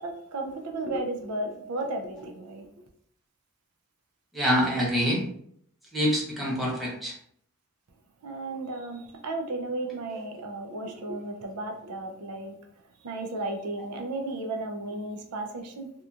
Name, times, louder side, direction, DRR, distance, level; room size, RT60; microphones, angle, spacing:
voice 1, 0.0-2.7 8.2-12.6 13.0-15.9, right 2 dB, 85° right, 0.5 m, -34 dB
voice 2, 4.3-5.2 5.9-7.1 10.1-10.2, equal, ahead, 0.8 m, -26 dB
2.8 x 2.3 x 2.4 m
head